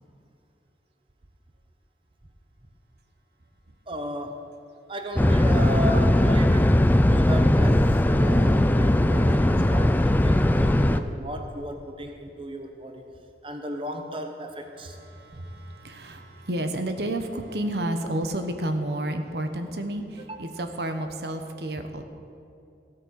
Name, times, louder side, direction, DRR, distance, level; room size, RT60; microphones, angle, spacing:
voice 1, 3.9-4.4 4.9-6.8 7.1-13.0 13.4-15.0 20.2-20.4, equal, 30° right, 5 dB, 0.9 m, -35 dB
sound 1, 5.2-11.0, left 1 dB, 10° left, 0.4 m, -19 dB
voice 2, 15.1-22.0, right 1 dB, 65° right, 7 dB, 1.0 m, -31 dB
15.5 x 8.7 x 6.4 m, 2.6 s
head